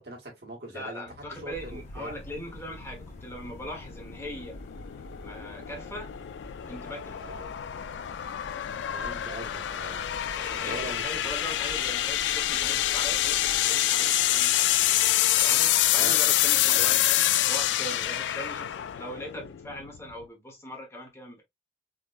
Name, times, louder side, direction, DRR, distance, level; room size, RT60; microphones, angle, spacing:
voice 1, 0.0-1.0 1.3-2.2 7.2-7.5 8.9-10.0 10.6-11.4 15.9-16.3 16.6-17.0, right 1 dB, 65° right, 1.6 m, -41 dB
voice 2, 0.7-4.6 5.2-6.2 6.7-7.3 10.3-14.7 15.3-21.4, equal, 15° left, 1.2 m, -40 dB
sound 1, 1.1-20.2, left 13 dB, 90° left, 0.3 m, -27 dB
sound 2, 1.5-13.6, equal, 45° left, 1.2 m, -47 dB
3.8 x 3.0 x 2.4 m
head